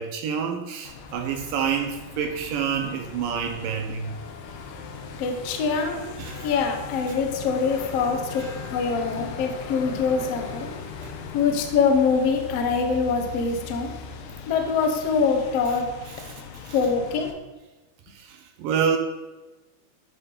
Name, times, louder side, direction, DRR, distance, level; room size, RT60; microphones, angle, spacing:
voice 1, 0.0-4.2 6.2-6.5 8.4-8.6 16.1-16.8 18.1-19.0, right 7 dB, 75° right, 4 dB, 2.1 m, -28 dB
sound 1, 0.9-17.3, left 5 dB, 85° left, 3.0 m, -39 dB
voice 2, 5.2-6.0 6.4-8.4 8.7-10.7 11.3-13.9 14.5-15.8 16.7-17.3, left 5 dB, 70° left, 4 dB, 1.5 m, -24 dB
12.0 x 6.2 x 5.4 m, 1.1 s
omnidirectional pair, 4.8 m